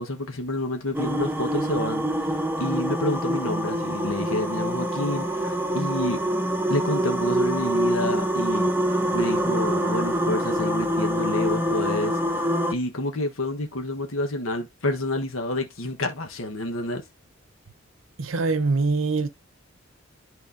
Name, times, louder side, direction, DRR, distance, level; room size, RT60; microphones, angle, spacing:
voice 1, 0.0-2.3 2.6-6.2 6.7-8.7 9.1-12.1 12.7-17.0, left 1 dB, 85° left, 1.3 m, -29 dB
sound 1, 0.9-12.7, equal, 10° right, 0.8 m, -25 dB
voice 2, 18.2-19.3, right 3 dB, 75° right, 0.7 m, -23 dB
11.0 x 4.3 x 2.6 m
head